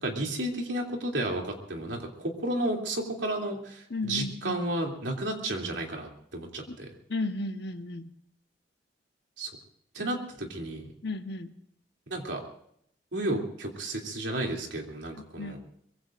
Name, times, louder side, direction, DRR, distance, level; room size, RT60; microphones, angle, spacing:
voice 1, 0.0-6.9 9.4-9.5 9.9-10.9 12.1-12.4 13.1-15.6, right 1 dB, 85° right, 1 dB, 3.0 m, -32 dB
voice 2, 3.9-4.6 6.7-6.8 7.1-8.1 11.0-11.5 15.4-15.5, left 2 dB, 65° left, 6 dB, 1.3 m, -34 dB
23.5 x 22.0 x 2.6 m, 0.70 s
head